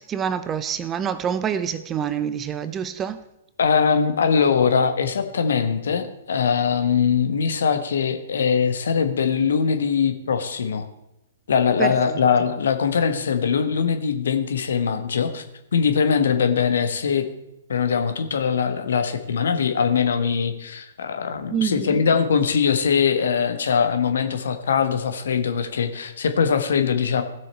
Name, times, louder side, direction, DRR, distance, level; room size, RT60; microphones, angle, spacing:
voice 1, 0.0-3.2 11.8-12.0 21.5-22.0, right 8 dB, 20° right, 0.6 m, -26 dB
voice 2, 3.6-10.9 11.5-15.4 15.7-17.3 17.7-27.2, left 6 dB, 65° left, 1.2 m, -21 dB
16.5 x 6.3 x 4.4 m
figure-of-eight pair, 120°, 0 cm